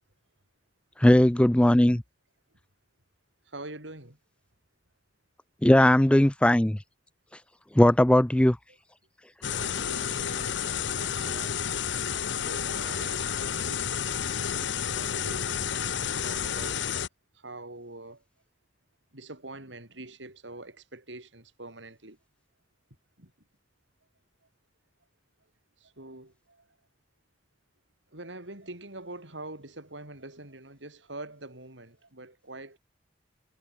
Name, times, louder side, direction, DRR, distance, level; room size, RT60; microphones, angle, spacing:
voice 1, 1.0-2.0 5.6-6.8 7.8-8.6, left 1 dB, 5° left, 0.4 m, -19 dB
voice 2, 3.5-4.2 9.4-11.8 12.4-14.0 14.4-16.9 17.3-18.2 19.1-22.2 23.2-23.3 25.8-26.7 28.1-32.8, right 2 dB, 85° right, 6.9 m, -44 dB
sound 1, 9.4-17.1, left 8 dB, 80° left, 0.9 m, -30 dB
head